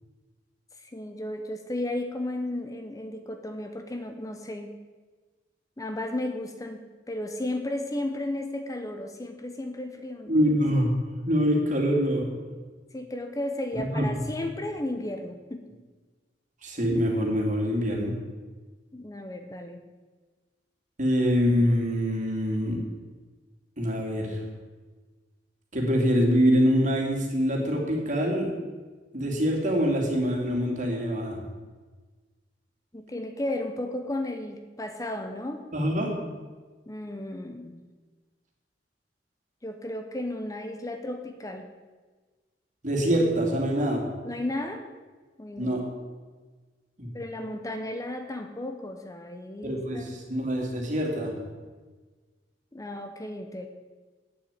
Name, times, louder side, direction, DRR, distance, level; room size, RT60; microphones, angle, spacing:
voice 1, 0.9-4.7 5.8-10.3 12.9-15.7 18.9-19.9 32.9-35.7 36.9-37.8 39.6-41.7 44.2-44.8 45.4-45.7 47.1-50.3 52.7-53.7, left 1 dB, 20° left, 6 dB, 0.8 m, -34 dB
voice 2, 10.3-10.9 11.3-12.2 13.7-14.0 16.6-18.1 21.0-22.8 23.8-24.4 25.7-28.5 29.1-31.4 35.7-36.1 42.8-44.0 45.6-45.8 47.0-47.1 49.6-51.3, equal, 45° right, 0 dB, 2.6 m, -25 dB
8.7 x 7.4 x 9.0 m, 1.4 s
head